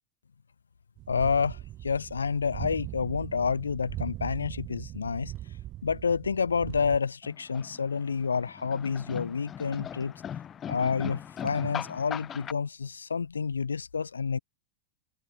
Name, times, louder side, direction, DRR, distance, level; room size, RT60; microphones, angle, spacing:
sound 1, 1.0-7.0, right 14 dB, 40° right, 5.8 m, -40 dB
voice 1, 1.1-5.3 5.8-10.1 10.7-14.4, left 5 dB, 85° left, 2.1 m, -29 dB
sound 2, 7.2-12.5, left 9 dB, 30° left, 4.2 m, -39 dB
hypercardioid pair, 95°, 0 cm